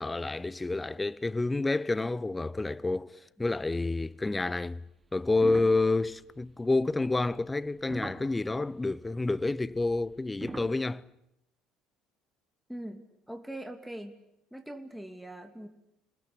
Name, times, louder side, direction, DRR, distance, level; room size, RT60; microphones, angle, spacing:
voice 1, 0.0-4.8 5.1-11.0, left 3 dB, 15° left, 0.9 m, -29 dB
sound 1, 5.3-8.6 9.6-10.7, right 2 dB, 15° right, 2.7 m, -42 dB
voice 2, 12.7-14.2 14.5-15.7, right 1 dB, ahead, 2.6 m, -42 dB
26.5 x 20.0 x 8.6 m
supercardioid pair, 75°, 0 cm